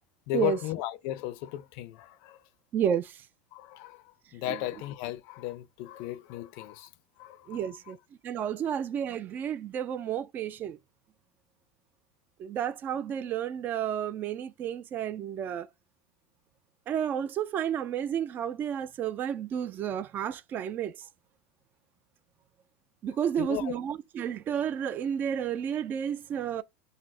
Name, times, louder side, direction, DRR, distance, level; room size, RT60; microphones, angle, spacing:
voice 1, 0.3-2.4 3.5-6.9 7.2-7.8 23.4-23.8, left 14 dB, 60° left, 0.5 m, -35 dB
voice 2, 2.7-3.2 4.5-4.6 7.5-8.0 8.2-10.8 12.4-15.7 16.9-21.1 23.0-26.6, right 9 dB, 30° right, 0.3 m, -31 dB
4.0 x 2.0 x 2.6 m
supercardioid pair, 125°, 6 cm